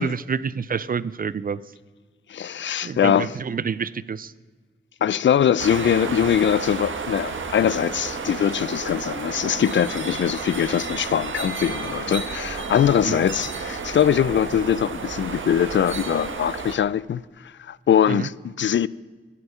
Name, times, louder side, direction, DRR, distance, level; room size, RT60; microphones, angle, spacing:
voice 1, 0.0-1.6 2.8-4.3 13.0-13.2 18.1-18.3, right 6 dB, 45° right, 0.5 m, -28 dB
voice 2, 2.3-3.3 5.0-18.9, left 9 dB, 60° left, 0.4 m, -22 dB
sound 1, 5.6-16.8, right 4 dB, 65° right, 1.6 m, -31 dB
15.5 x 10.0 x 5.6 m
wide cardioid pair, 95°, 21 cm